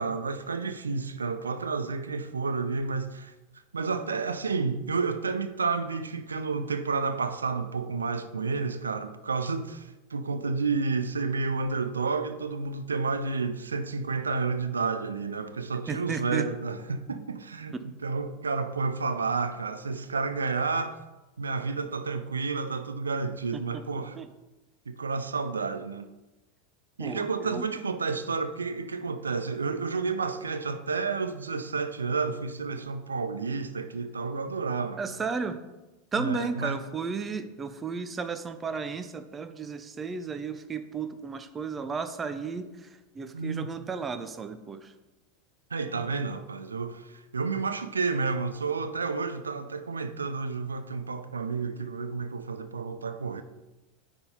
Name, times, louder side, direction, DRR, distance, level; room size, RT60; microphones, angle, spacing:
voice 1, 0.0-3.3 3.7-17.8 18.0-21.0 21.4-24.2 24.9-26.1 27.0-35.0 36.2-36.8 43.3-43.7 45.7-53.4, right 4 dB, 75° right, 0.4 m, -30 dB
voice 2, 15.9-16.5 17.7-17.8 23.5-23.8 24.1-24.3 27.0-27.7 35.0-35.6 36.1-44.9, right 5 dB, 20° right, 0.5 m, -34 dB
9.6 x 3.5 x 4.2 m
figure-of-eight pair, 85°, 0 cm